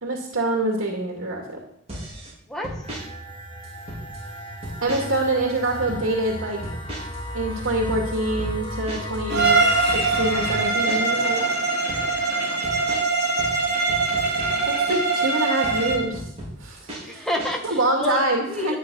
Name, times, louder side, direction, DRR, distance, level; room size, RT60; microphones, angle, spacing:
voice 1, 0.0-1.4 4.8-6.6 7.3-11.5 14.7-16.3 16.6-17.3 17.6-18.7, right 1 dB, 90° right, 0 dB, 2.4 m, -25 dB
sound 1, 1.9-2.3 2.6-3.0 3.6-4.3 4.6-5.2 5.5-6.0 6.6-7.2 7.5-11.3 11.6-12.1 12.6-15.2 15.6-17.8, equal, 30° right, 4.7 m, -36 dB
voice 2, 2.5-2.9 12.2-13.3 17.0-18.8, left 1 dB, 5° left, 1 dB, 2.0 m, -31 dB
sound 2, 2.8-10.7, equal, 25° left, 1.6 m, -34 dB
Bowed string instrument, 9.3-16.1, right 3 dB, 55° right, 3.3 m, -22 dB
12.0 x 9.5 x 6.3 m, 0.71 s
head